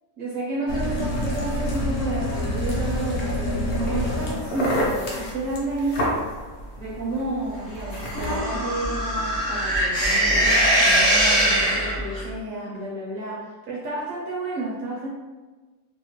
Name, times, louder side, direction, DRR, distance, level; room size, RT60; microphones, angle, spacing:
voice 1, 0.2-6.2 6.8-15.1, right 2 dB, 70° right, -5 dB, 0.8 m, -31 dB
sound 1, 0.7-8.4, left 1 dB, 65° left, 0.7 m, -28 dB
sound 2, 7.9-12.2, right 1 dB, 5° left, 0.4 m, -21 dB
2.8 x 2.0 x 2.9 m, 1.3 s
omnidirectional pair, 1.7 m